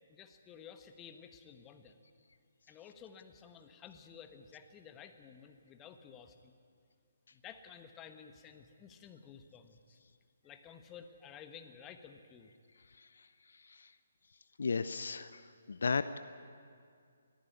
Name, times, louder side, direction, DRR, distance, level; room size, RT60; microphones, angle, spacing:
voice 1, 0.1-2.0 2.7-6.6 7.3-10.0 10.4-12.5, left 7 dB, 15° left, 7 dB, 1.2 m, -53 dB
voice 2, 13.5-13.9 14.6-15.4 15.7-16.2, left 4 dB, 60° left, 13 dB, 0.7 m, -35 dB
21.5 x 14.5 x 9.7 m, 2.3 s
figure-of-eight pair, 140°, 0 cm